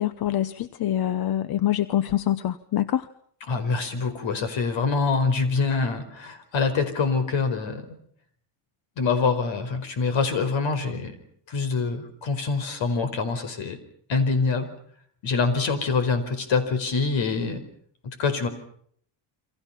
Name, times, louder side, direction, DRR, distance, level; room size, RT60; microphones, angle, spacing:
voice 1, 0.0-3.1, left 12 dB, 45° left, 15 dB, 1.0 m, -25 dB
voice 2, 3.5-7.9 9.0-11.1 11.5-13.8 14.1-14.7 15.2-17.6 18.0-18.5, left 4 dB, 60° left, 11 dB, 5.0 m, -25 dB
29.0 x 25.0 x 5.8 m, 0.63 s
cardioid pair, 130°, 50 cm